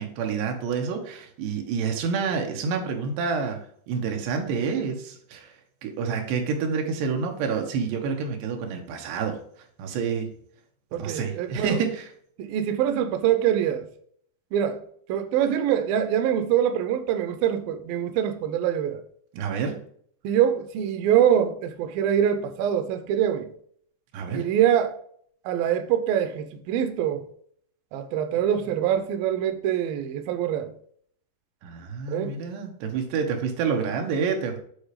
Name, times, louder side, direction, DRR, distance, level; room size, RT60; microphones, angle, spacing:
voice 1, 0.0-3.6 3.9-5.5 5.8-9.4 9.8-10.3 11.0-12.0 19.3-19.8 24.1-24.4 31.6-34.6, right 5 dB, 75° right, 3.3 m, -28 dB
voice 2, 10.9-11.8 12.4-13.9 14.5-14.8 15.1-19.0 20.2-23.5 24.3-24.9 25.4-27.2 27.9-30.7 32.1-32.4, right 9 dB, 90° right, 2.0 m, -24 dB
8.5 x 4.0 x 4.9 m
omnidirectional pair, 5.2 m